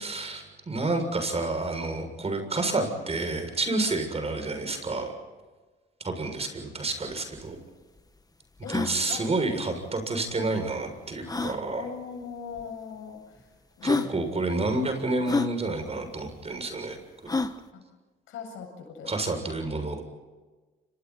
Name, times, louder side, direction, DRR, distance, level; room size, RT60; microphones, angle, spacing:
voice 1, 0.0-5.2 6.0-7.6 8.7-11.9 13.8-17.0 17.2-17.3 19.0-20.0, right 2 dB, 30° right, 6 dB, 7.0 m, -29 dB
sound 1, 7.1-7.2 7.4-7.5 8.0-8.1 8.6-8.9 10.3-10.4 11.3-11.6 12.6-12.7 13.4-13.5 13.8-14.1 15.3-15.5 17.3-17.6, left 3 dB, 20° left, 1.5 m, -28 dB
voice 2, 11.8-13.5 13.8-14.6 17.7-17.8 18.3-19.6, left 6 dB, 85° left, 3 dB, 7.9 m, -41 dB
29.5 x 27.5 x 4.3 m, 1.3 s
cardioid pair, 90°, 20 cm